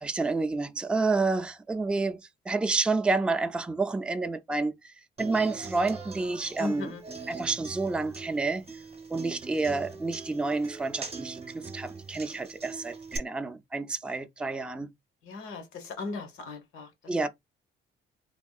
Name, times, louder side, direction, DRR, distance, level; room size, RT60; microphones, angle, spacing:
voice 1, 0.0-2.2 2.5-4.9 5.2-6.9 7.3-8.7 9.1-14.9 17.1-17.3, right 3 dB, 5° right, 0.3 m, -29 dB
Human voice / Acoustic guitar, 5.2-13.2, right 4 dB, 30° right, 0.7 m, -42 dB
voice 2, 6.6-7.0 15.2-16.9, left 3 dB, 85° left, 1.1 m, -36 dB
3.5 x 2.3 x 2.3 m
cardioid pair, 90°, 20 cm